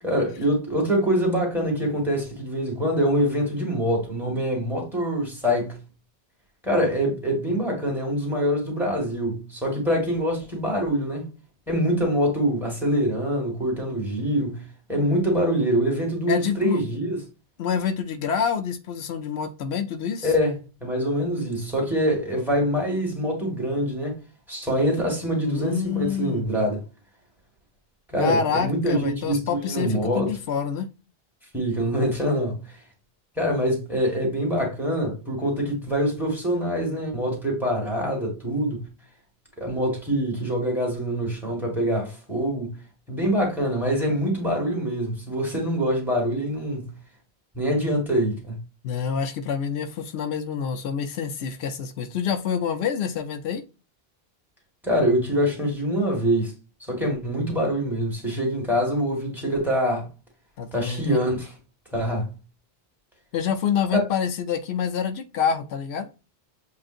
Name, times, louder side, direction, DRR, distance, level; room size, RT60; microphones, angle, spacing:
voice 1, 0.0-5.8 6.6-11.3 11.7-17.2 20.2-20.5 20.8-24.2 24.5-26.8 28.1-30.3 31.5-32.7 33.4-38.9 39.6-42.8 43.1-47.0 47.6-48.6 54.8-56.5 56.9-60.1 60.7-61.5 61.9-62.3 63.9-64.0, equal, ahead, 1.9 m, -24 dB
voice 2, 16.3-16.8 17.6-20.3 25.4-26.5 28.2-30.9 48.8-53.6 60.6-61.2 63.3-66.1, left 7 dB, 85° left, 0.9 m, -27 dB
7.4 x 2.5 x 2.5 m
omnidirectional pair, 1.1 m